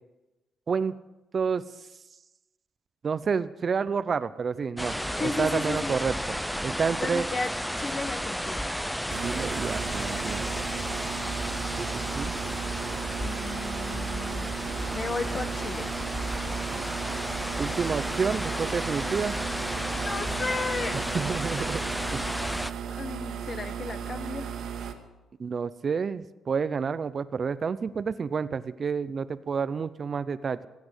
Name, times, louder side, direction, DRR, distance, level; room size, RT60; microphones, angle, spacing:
voice 1, 1.3-1.7 3.0-5.0 5.2-6.4 6.6-7.3 9.2-10.5 11.8-12.3 17.6-19.4 20.9-21.8 22.1-22.2 25.4-30.7, right 5 dB, 45° right, 14 dB, 0.7 m, -29 dB
sound 1, 4.8-22.7, equal, ahead, 0.6 m, -33 dB
voice 2, 5.2-6.0 6.9-8.7 13.2-14.5 14.9-15.9 19.7-21.2 23.0-24.5, left 3 dB, 40° left, 10 dB, 1.4 m, -34 dB
sound 2, 9.1-24.9, right 7 dB, 70° right, 1.9 m, -35 dB
19.0 x 8.6 x 8.2 m, 1.0 s
cardioid pair, 90°, 0 cm